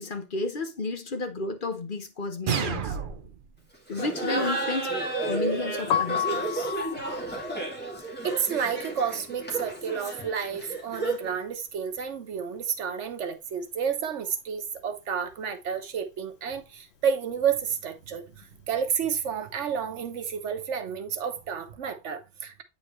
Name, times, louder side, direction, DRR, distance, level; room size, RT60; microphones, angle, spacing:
voice 1, 0.0-3.0 3.9-6.7, left 3 dB, 50° left, 1.2 m, -32 dB
sound 1, 2.5-3.5, right 6 dB, 55° right, 0.8 m, -29 dB
Laughter, 3.9-11.4, right 2 dB, 10° left, 2.2 m, -32 dB
Piano, 5.8-11.7 12.0-13.6 13.8-20.3, left 9 dB, 70° left, 0.8 m, -35 dB
voice 2, 8.2-22.6, right 7 dB, 90° right, 1.2 m, -30 dB
8.6 x 4.0 x 3.0 m
omnidirectional pair, 1.2 m